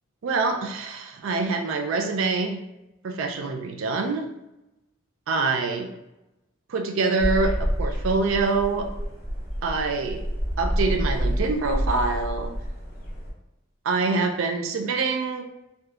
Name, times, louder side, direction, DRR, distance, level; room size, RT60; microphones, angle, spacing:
voice 1, 0.2-2.6 3.0-4.3 5.3-5.9 6.7-8.9 9.6-10.3 10.6-12.5 13.8-15.4, right 3 dB, 70° right, 4 dB, 0.4 m, -25 dB
sound 1, 7.2-13.3, equal, 45° left, 0.8 m, -28 dB
3.4 x 2.6 x 2.3 m, 0.91 s
head